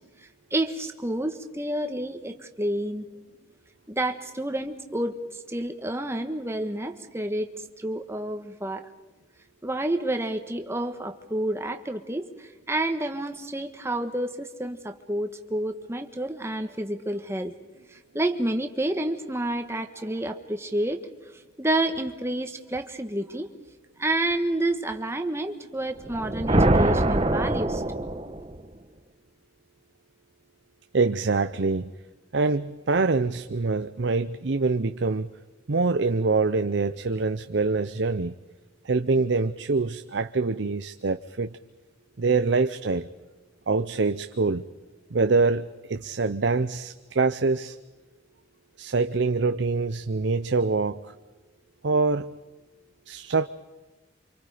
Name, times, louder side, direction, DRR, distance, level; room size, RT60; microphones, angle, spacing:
voice 1, 0.5-3.0 3.9-7.5 7.8-8.9 9.6-17.5 17.9-21.0 21.6-23.5 24.0-28.0, right 1 dB, 15° right, 1.5 m, -29 dB
sound 1, 26.0-28.6, right 1 dB, 30° right, 1.3 m, -23 dB
voice 2, 30.9-31.9 32.3-35.3 35.7-38.3 38.8-41.6 42.2-43.1 43.7-44.7 45.1-47.8 48.8-51.1 51.8-52.3 53.1-53.5, right 3 dB, 65° right, 0.7 m, -25 dB
29.0 x 26.0 x 5.1 m
head